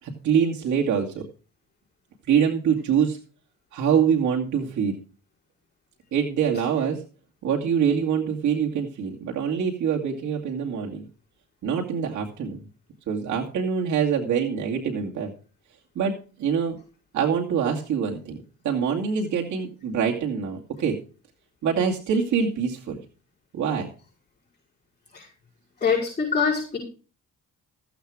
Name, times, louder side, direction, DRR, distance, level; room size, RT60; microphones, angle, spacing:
voice 1, 0.0-1.2 2.3-3.2 3.7-5.0 6.1-7.0 7.4-11.1 11.6-12.6 13.1-15.3 16.0-16.8 17.1-18.4 18.6-21.0 21.6-23.0 23.5-23.9, right 7 dB, 70° right, -1 dB, 2.5 m, -24 dB
voice 2, 25.8-26.8, left 6 dB, 25° left, -6 dB, 5.7 m, -24 dB
15.0 x 8.1 x 5.0 m, 0.36 s
cardioid pair, 90°, 30 cm